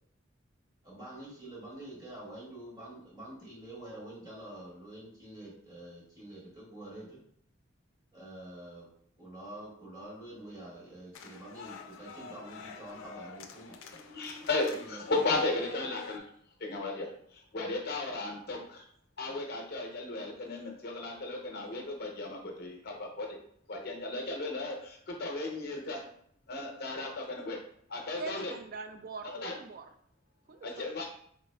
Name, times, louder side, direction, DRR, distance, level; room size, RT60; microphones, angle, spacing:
voice 1, 0.8-7.2 8.1-8.8 9.2-13.8 14.6-15.2, right 1 dB, 20° right, -7 dB, 1.5 m, -47 dB
sound 1, 11.1-16.2, left 5 dB, 90° left, 0.4 m, -48 dB
voice 2, 13.9-16.2 16.6-18.8 19.2-23.4 23.7-26.0 26.5-27.6 27.9-28.5 29.2-29.5 30.6-31.1, left 2 dB, 50° left, 1 dB, 0.8 m, -35 dB
voice 3, 28.2-29.8 30.5-30.9, right 4 dB, 45° right, 7 dB, 0.3 m, -42 dB
3.9 x 3.5 x 2.2 m, 0.64 s
head